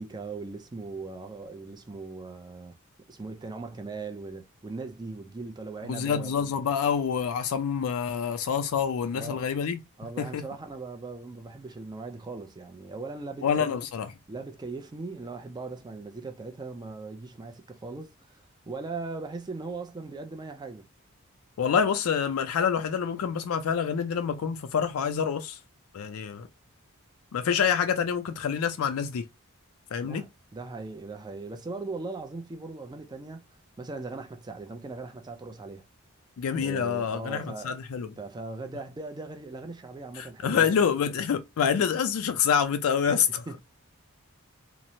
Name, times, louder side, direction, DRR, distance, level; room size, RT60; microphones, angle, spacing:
voice 1, 0.0-2.7 3.1-6.5 9.1-9.5 10.0-13.8 14.3-20.9 30.0-33.4 33.8-35.8 36.5-37.8 38.2-40.8 43.1-43.2 43.5-43.6, right 3 dB, 20° right, 0.4 m, -39 dB
voice 2, 5.9-9.8 10.2-10.4 13.4-14.1 21.6-25.6 25.9-26.5 27.3-29.3 29.9-30.3 36.4-38.1 40.2-43.4, left 7 dB, 70° left, 0.4 m, -27 dB
2.9 x 2.0 x 2.6 m
head